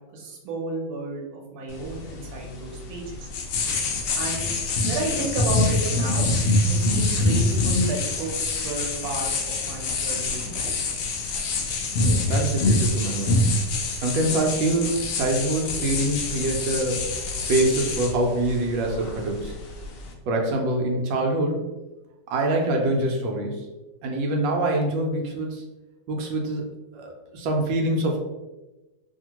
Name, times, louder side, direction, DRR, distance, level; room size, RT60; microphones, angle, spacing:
voice 1, 0.1-3.3 4.2-4.4 4.9-6.3 6.6-10.8, right 3 dB, 65° right, -2 dB, 1.2 m, -32 dB
sound 1, 1.7-20.1, left 2 dB, 75° left, 0.7 m, -26 dB
voice 2, 12.0-13.4 14.0-17.1 17.5-19.5 20.3-21.6 22.3-23.6 24.0-25.6 26.1-26.6 26.9-28.2, right 1 dB, 90° right, 1 dB, 1.3 m, -25 dB
2.8 x 2.7 x 2.8 m, 1.1 s
omnidirectional pair, 1.9 m